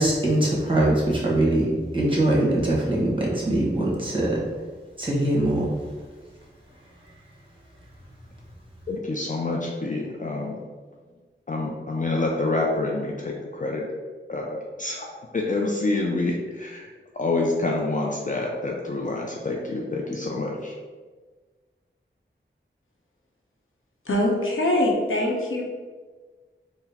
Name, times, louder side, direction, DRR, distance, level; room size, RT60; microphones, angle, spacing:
voice 1, 0.0-4.4 5.0-5.7, right 1 dB, 25° right, -5 dB, 1.3 m, -22 dB
voice 2, 8.9-10.6 11.5-13.9 14.3-16.9 17.1-20.7, left 2 dB, 40° left, -1 dB, 0.4 m, -27 dB
voice 3, 24.0-25.6, left 1 dB, 80° left, -2 dB, 0.8 m, -23 dB
3.9 x 2.1 x 4.1 m, 1.4 s
wide cardioid pair, 50°, 20 cm